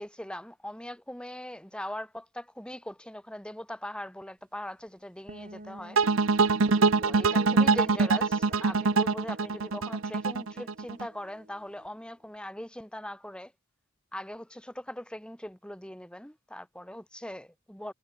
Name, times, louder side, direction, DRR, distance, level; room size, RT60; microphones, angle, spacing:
voice 1, 0.0-6.0 7.0-13.5 14.1-17.9, left 1 dB, 5° left, 3.3 m, -40 dB
sound 1, 5.3-11.9, right 2 dB, 45° right, 4.2 m, -44 dB
sound 2, 6.0-11.1, right 4 dB, 80° right, 0.9 m, -24 dB
head